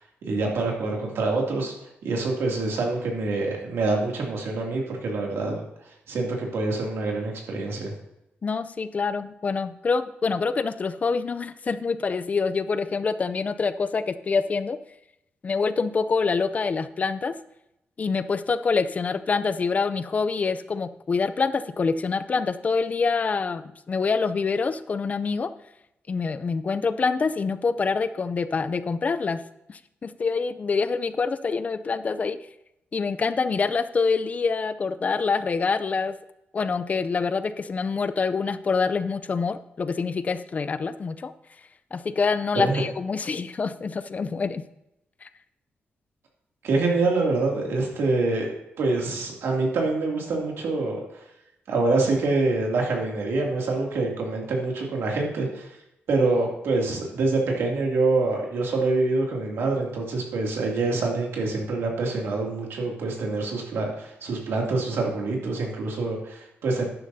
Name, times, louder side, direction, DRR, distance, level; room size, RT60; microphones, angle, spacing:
voice 1, 0.3-1.7 2.0-5.6 6.1-7.9 42.5-42.8 46.6-51.0 51.7-55.7 56.1-66.9, right 3 dB, 85° right, 0 dB, 2.5 m, -25 dB
voice 2, 8.4-14.8 15.4-17.3 18.0-25.5 26.1-29.4 29.7-32.4 32.9-36.2 36.5-41.3 41.9-44.6 45.2-45.3, left 4 dB, 40° left, 13 dB, 0.5 m, -26 dB
11.5 x 9.8 x 2.7 m, 0.86 s
cardioid pair, 120°, 4 cm